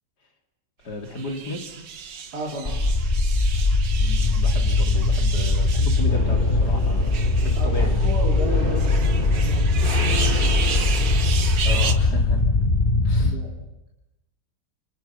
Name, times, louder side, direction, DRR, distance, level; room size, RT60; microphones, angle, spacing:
voice 1, 0.8-1.7 4.0-8.1 11.6-12.4 13.0-13.4, left 1 dB, 65° left, 3 dB, 3.7 m, -34 dB
sound 1, 1.1-11.9, right 6 dB, 80° right, 2.1 m, -33 dB
voice 2, 2.3-2.8 7.6-10.9 13.2-13.5, equal, 60° right, -2 dB, 4.3 m, -33 dB
sound 2, 2.6-13.3, left 2 dB, 30° left, 3.1 m, -20 dB
29.0 x 27.0 x 5.8 m, 0.92 s
omnidirectional pair, 1.9 m